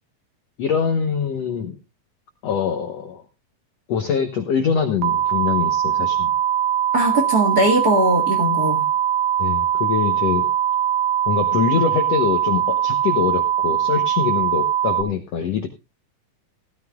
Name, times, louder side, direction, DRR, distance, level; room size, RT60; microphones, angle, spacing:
voice 1, 0.6-1.8 2.4-3.2 3.9-6.3 9.4-10.5 11.3-15.7, left 7 dB, 70° left, 6 dB, 1.5 m, -23 dB
sound 1, 5.0-15.0, right 10 dB, 85° right, 2.7 m, -21 dB
voice 2, 6.9-8.9, right 1 dB, 40° right, 2 dB, 1.4 m, -20 dB
17.5 x 13.0 x 2.3 m, 0.24 s
omnidirectional pair, 4.4 m